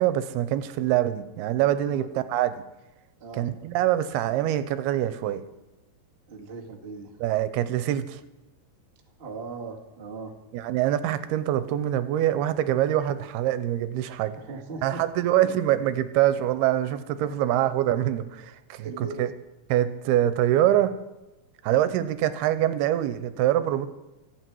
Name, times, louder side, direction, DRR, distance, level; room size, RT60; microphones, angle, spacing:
voice 1, 0.0-2.5 3.4-5.4 7.2-8.2 10.5-14.4 14.8-19.3 19.7-20.9 21.6-23.9, right 12 dB, 90° right, 13 dB, 2.7 m, -24 dB
voice 2, 3.2-3.5 6.3-7.2 9.2-10.3 14.3-15.5 17.3-17.4 18.8-19.2 21.6-21.9, right 3 dB, 40° right, 0 dB, 0.8 m, -39 dB
24.5 x 8.7 x 4.6 m, 1.0 s
omnidirectional pair, 4.5 m